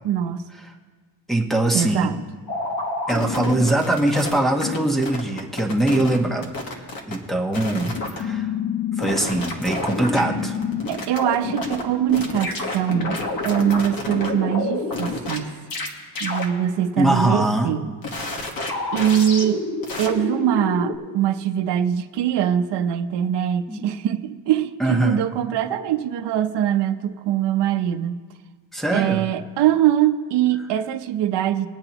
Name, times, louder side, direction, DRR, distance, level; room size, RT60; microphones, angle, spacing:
voice 1, 0.0-0.4 1.7-2.2 10.9-15.6 16.2-17.9 18.9-19.6 20.0-28.2 28.9-31.7, right 10 dB, 70° right, 8 dB, 0.7 m, -22 dB
voice 2, 1.3-2.1 3.1-6.5 7.1-8.5 9.0-10.6 17.0-17.7 18.7-18.9 23.7-23.9 24.8-25.2 28.7-29.2, right 1 dB, ahead, 3 dB, 1.0 m, -22 dB
sound 1, 2.5-4.8 5.0-6.2 6.4-7.2 7.5-11.8 12.1-15.4 15.7-15.9 16.2-16.5 18.0-21.0, left 3 dB, 50° left, 1.6 m, -28 dB
21.5 x 8.7 x 3.0 m, 1.5 s
cardioid pair, 135°, 43 cm